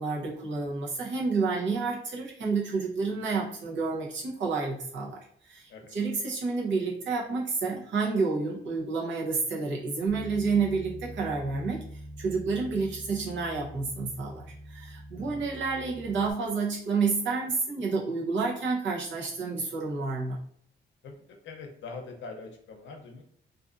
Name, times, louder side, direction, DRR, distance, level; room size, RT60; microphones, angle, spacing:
voice 1, 0.0-20.4, right 4 dB, 80° right, -3 dB, 0.8 m, -30 dB
Bass guitar, 10.1-16.3, equal, 20° right, 0.8 m, -44 dB
voice 2, 15.2-15.5 21.0-23.2, left 4 dB, 85° left, 3 dB, 0.6 m, -43 dB
2.5 x 2.4 x 2.4 m, 0.65 s
cardioid pair, 95°, 19 cm